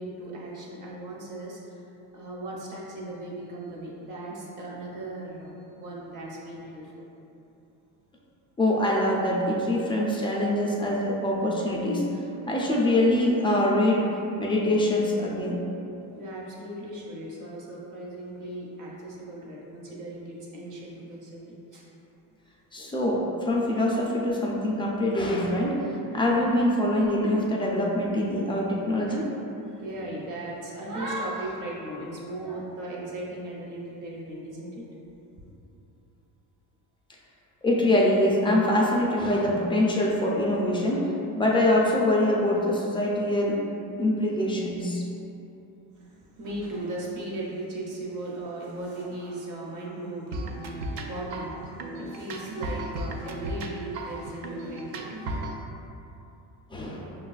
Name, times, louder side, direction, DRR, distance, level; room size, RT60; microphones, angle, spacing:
voice 1, 0.0-1.6 2.1-6.9 16.1-21.8 29.1-29.2 29.7-34.8 45.9-51.6 52.0-55.4, right 1 dB, 45° right, -4 dB, 0.9 m, -37 dB
voice 2, 8.6-12.1 12.5-14.0 14.4-15.6 22.7-25.8 26.1-29.3 37.6-41.1 41.4-43.6 44.0-45.0 56.7-57.1, left 1 dB, 15° left, -3 dB, 0.3 m, -24 dB
sound 1, 50.3-55.6, right 1 dB, 65° right, 0.5 m, -35 dB
5.6 x 2.3 x 2.3 m, 2.8 s
cardioid pair, 115°, 45 cm